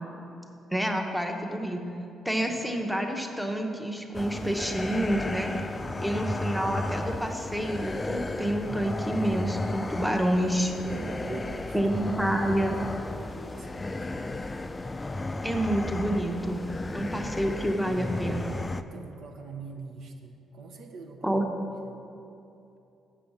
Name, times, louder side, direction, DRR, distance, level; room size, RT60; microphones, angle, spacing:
voice 1, 0.7-1.8 2.2-5.5 6.0-10.7 11.7-12.8 15.4-16.7 16.9-18.6 21.2-21.4, right 1 dB, ahead, 3 dB, 0.8 m, -28 dB
sound 1, 4.1-18.8, left 2 dB, 20° left, 0.3 m, -34 dB
voice 2, 10.8-11.8 12.5-14.5 16.9-17.1 18.8-21.3 21.9-22.0, right 4 dB, 75° right, 3 dB, 0.7 m, -44 dB
7.1 x 5.1 x 7.1 m, 2.8 s
cardioid pair, 90°, 0 cm